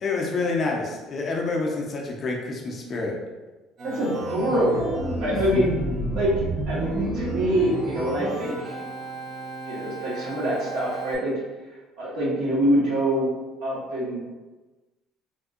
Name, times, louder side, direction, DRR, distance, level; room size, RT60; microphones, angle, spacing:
voice 1, 0.0-3.2 5.3-5.6, left 3 dB, 30° left, -1 dB, 0.4 m, -28 dB
Organ, 3.8-11.1, right 1 dB, 35° right, 0.5 m, -31 dB
voice 2, 3.8-5.7 6.1-8.8 9.7-11.3 12.0-13.3 13.6-14.2, equal, 65° right, -5 dB, 1.2 m, -25 dB
3.5 x 2.6 x 2.4 m, 1.2 s
cardioid pair, 160°, 0 cm